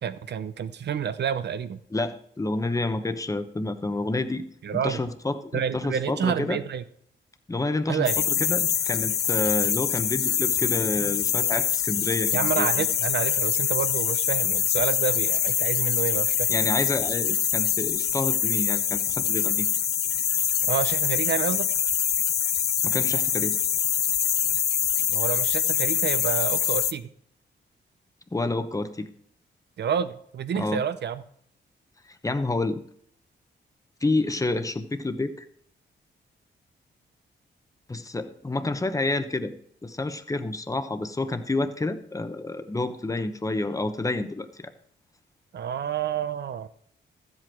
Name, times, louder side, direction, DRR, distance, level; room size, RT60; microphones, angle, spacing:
voice 1, 0.0-1.8 4.6-5.0 5.5-6.8 7.9-8.2 12.3-16.5 20.7-21.7 25.1-27.1 29.8-31.2 45.5-46.7, right 8 dB, 65° right, 13 dB, 0.8 m, -29 dB
voice 2, 1.9-4.5 4.8-6.6 7.5-8.0 8.5-12.7 16.5-19.7 22.8-23.6 28.3-29.1 30.6-30.8 32.2-32.8 34.0-35.5 37.9-39.5 39.8-44.7, left 2 dB, 15° left, 9 dB, 1.0 m, -29 dB
sound 1, 8.1-26.9, left 9 dB, 55° left, 0.6 m, -24 dB
13.0 x 8.0 x 4.6 m, 0.66 s
cardioid pair, 100°, 19 cm